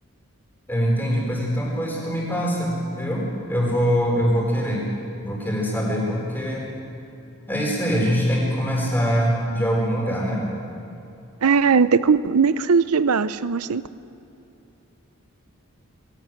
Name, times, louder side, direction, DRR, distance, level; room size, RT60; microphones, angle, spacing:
voice 1, 0.7-4.9 5.2-6.7 7.5-10.5, equal, 10° left, -3 dB, 4.5 m, -23 dB
voice 2, 11.4-13.8, right 5 dB, 85° right, 15 dB, 0.6 m, -19 dB
21.0 x 17.0 x 7.8 m, 2.8 s
head